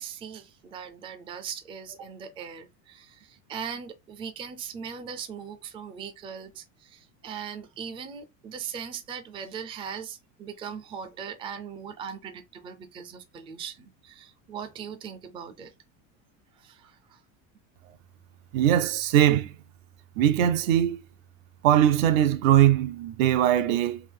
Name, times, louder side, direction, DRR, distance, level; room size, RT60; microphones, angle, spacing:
voice 1, 0.0-15.7 16.6-17.2, right 7 dB, 15° right, 0.4 m, -39 dB
voice 2, 18.5-19.5 20.2-21.0 21.6-24.0, right 11 dB, 80° right, 0.7 m, -21 dB
3.6 x 2.7 x 3.6 m
supercardioid pair, 145°, 40 cm